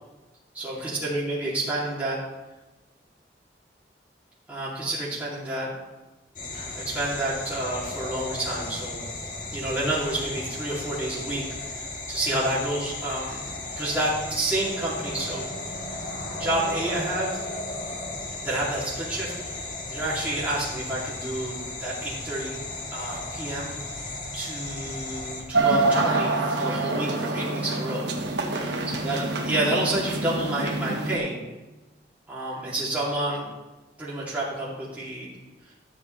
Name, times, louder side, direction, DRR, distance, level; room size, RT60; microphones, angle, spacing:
voice 1, 0.5-2.2 4.5-5.7 6.7-9.0 9.5-11.4 12.1-15.4 16.4-17.4 18.4-19.6 19.9-22.6 22.9-23.7 24.3-28.1 29.0-31.3 32.3-33.5 34.0-35.3, right 1 dB, 10° right, -9 dB, 2.8 m, -29 dB
sound 1, 6.4-25.4, left 2 dB, 45° left, 1.6 m, -35 dB
sound 2, 25.5-31.2, right 3 dB, 80° right, 1.2 m, -26 dB
13.0 x 7.3 x 3.3 m, 1.1 s
head